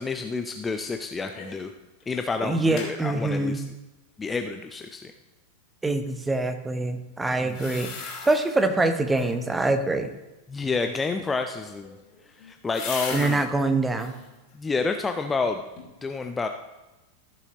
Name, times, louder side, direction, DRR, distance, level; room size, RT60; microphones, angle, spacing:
voice 1, 0.0-1.7 2.1-3.6 4.2-5.1 7.4-7.6 10.5-12.0 12.5-13.4 14.5-15.6 16.0-16.5, left 4 dB, 15° left, 6 dB, 0.5 m, -29 dB
sound 1, 1.3-1.7 2.0-2.1 2.4-2.9 7.4-8.6 9.0-9.5 11.5-13.5 13.9-14.3 14.8-15.4 15.8-15.9, left 5 dB, 35° left, 2.6 m, -38 dB
voice 2, 2.4-3.6 5.8-7.9 8.2-10.1 13.1-14.2, right 2 dB, 10° right, 8 dB, 0.8 m, -24 dB
15.0 x 6.9 x 2.9 m, 1.1 s
figure-of-eight pair, 90°, 0 cm